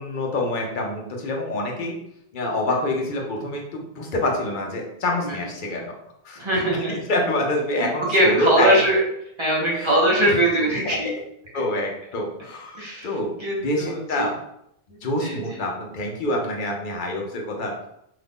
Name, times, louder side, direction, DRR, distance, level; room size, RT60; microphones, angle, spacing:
voice 1, 0.0-1.9 2.3-5.9 6.2-8.8 9.8-9.9 10.2-10.3 11.5-13.3 13.6-14.3 15.0-17.7, left 1 dB, 50° left, 0 dB, 0.7 m, -26 dB
voice 2, 6.4-6.9 7.8-9.0 9.4-11.1 12.7-13.1 13.4-14.3 15.2-15.4, right 1 dB, 25° right, -5 dB, 0.9 m, -21 dB
2.8 x 2.5 x 3.4 m, 0.76 s
omnidirectional pair, 1.2 m